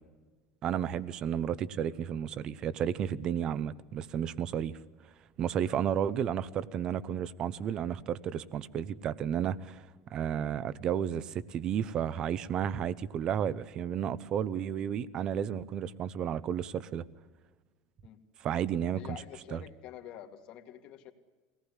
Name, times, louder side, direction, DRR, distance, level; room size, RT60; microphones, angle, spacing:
voice 1, 0.6-4.7 5.4-9.8 10.1-17.0 18.4-19.0 19.5-19.6, right 9 dB, 35° right, 17 dB, 0.8 m, -32 dB
voice 2, 18.9-21.1, left 11 dB, 45° left, 5 dB, 2.2 m, -47 dB
23.0 x 18.5 x 10.0 m, 1.3 s
supercardioid pair, 155°, 2 cm